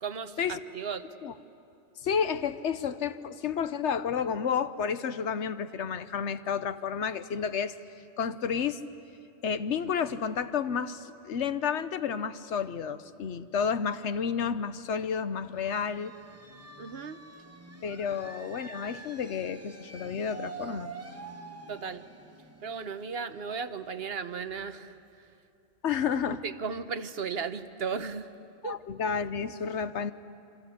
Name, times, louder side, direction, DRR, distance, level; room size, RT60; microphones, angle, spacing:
voice 1, 0.0-1.0 16.8-17.2 21.7-22.1 22.6-25.0 26.4-28.3 28.6-28.8, right 5 dB, 60° right, 11 dB, 1.1 m, -35 dB
voice 2, 2.0-7.7 8.2-8.8 9.4-16.1 17.8-20.9 25.8-26.4 28.6-30.1, left 7 dB, 80° left, 12 dB, 1.2 m, -31 dB
sound 1, 15.5-24.9, right 4 dB, 15° right, 1.0 m, -47 dB
27.5 x 25.0 x 8.4 m, 2.6 s
omnidirectional pair, 1.2 m